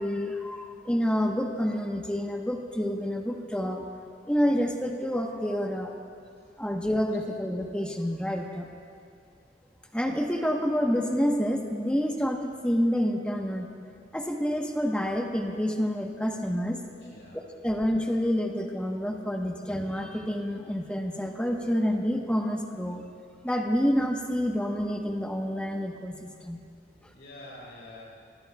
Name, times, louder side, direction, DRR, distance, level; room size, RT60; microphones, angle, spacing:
voice 1, 0.0-3.8 4.3-5.9 6.6-8.7 9.9-13.7 14.1-16.8 17.3-23.0 23.4-26.6 27.0-27.1, equal, 5° left, 1 dB, 1.1 m, -28 dB
voice 2, 17.0-17.4 27.1-28.0, left 1 dB, 85° left, -4 dB, 4.4 m, -47 dB
26.0 x 21.0 x 2.4 m, 2.4 s
head